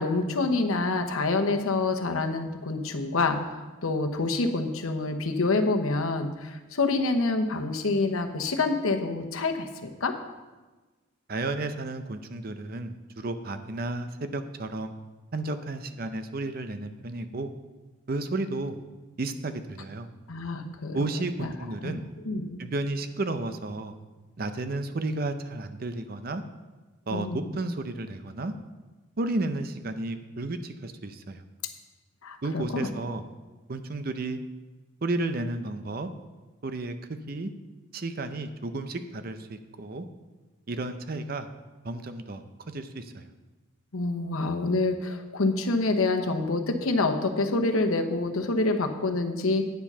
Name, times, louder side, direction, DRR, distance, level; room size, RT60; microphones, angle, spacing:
voice 1, 0.0-9.7 10.0-10.1 20.3-21.0 21.4-21.5 21.8-22.0 22.2-22.6 27.1-27.5 32.2-32.9 43.9-49.6, left 3 dB, 90° left, 5 dB, 1.0 m, -27 dB
voice 2, 11.3-14.9 15.3-17.5 18.1-18.8 19.2-20.1 20.9-22.0 22.6-23.9 24.4-26.4 27.1-28.5 29.2-31.4 32.4-33.2 33.7-34.4 35.0-36.1 36.6-37.5 37.9-40.1 40.7-41.5 41.8-43.3, right 2 dB, 45° right, 9 dB, 0.6 m, -32 dB
9.2 x 7.4 x 5.5 m, 1.2 s
head